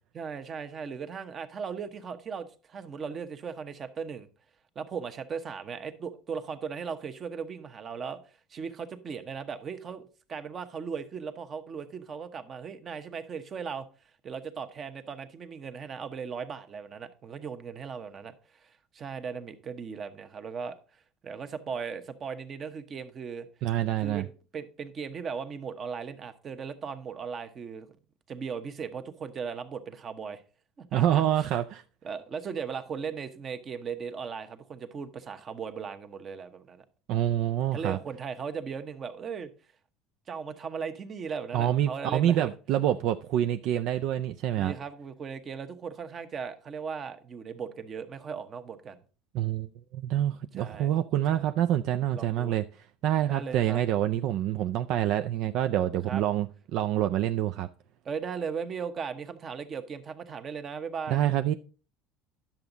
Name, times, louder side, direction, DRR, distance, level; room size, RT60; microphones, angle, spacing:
voice 1, 0.1-4.3 4.7-8.2 8.5-13.9 14.2-23.5 24.0-27.9 28.3-30.4 30.8-31.2 32.0-36.8 37.7-39.5 40.3-42.5 44.6-49.0 50.5-50.9 51.3-51.5 52.1-52.6 53.2-53.8 56.1-56.2 58.0-61.2, right 6 dB, 30° right, 1.0 m, -37 dB
voice 2, 23.6-24.3 30.9-31.8 37.1-38.0 41.5-44.7 49.3-52.6 53.0-57.7 61.1-61.5, right 11 dB, 60° right, 0.4 m, -27 dB
10.5 x 7.1 x 3.9 m
cardioid pair, 135°, 0 cm